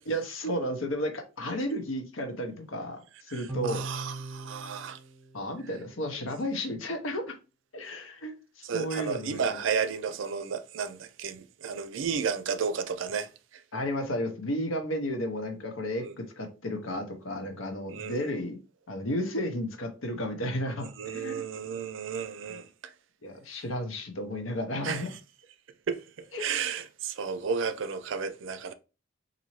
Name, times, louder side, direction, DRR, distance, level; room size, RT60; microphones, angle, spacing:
voice 1, 0.1-3.8 5.3-7.4 7.7-8.3 8.7-9.4 13.7-18.6 18.9-21.4 22.5-22.6 23.2-25.2 26.3-26.4, equal, 85° left, 0.9 m, -33 dB
voice 2, 3.3-5.0 8.6-13.3 16.0-16.1 17.9-18.2 21.0-22.9 24.8-25.1 25.9-26.0 26.4-28.7, right 6 dB, 70° right, 0.4 m, -32 dB
sound 1, 3.5-6.1, right 2 dB, ahead, 1.0 m, -40 dB
4.0 x 2.6 x 3.0 m
head